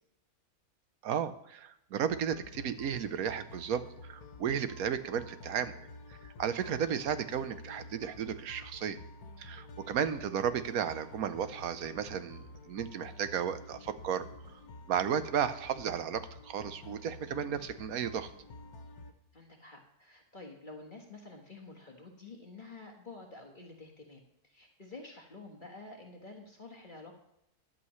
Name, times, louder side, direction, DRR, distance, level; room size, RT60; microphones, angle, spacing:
voice 1, 1.0-5.8 6.1-9.0 9.4-14.3 14.9-18.3, right 8 dB, 75° right, 12 dB, 1.3 m, -34 dB
sound 1, 2.1-19.1, left 2 dB, 85° left, 1.6 m, -49 dB
voice 2, 19.3-27.2, left 3 dB, 35° left, 1 dB, 1.6 m, -49 dB
13.5 x 11.0 x 3.2 m, 0.82 s
omnidirectional pair, 1.5 m